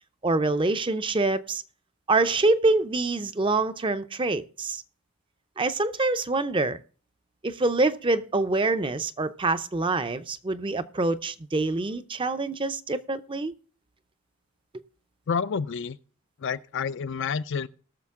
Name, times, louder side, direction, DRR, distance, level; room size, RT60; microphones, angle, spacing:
voice 1, 0.2-1.6 2.1-4.8 5.6-6.8 7.4-13.5, right 2 dB, 20° right, 0.5 m, -25 dB
voice 2, 15.3-16.0 16.4-17.7, left 6 dB, 55° left, 0.4 m, -29 dB
19.0 x 6.6 x 3.6 m
head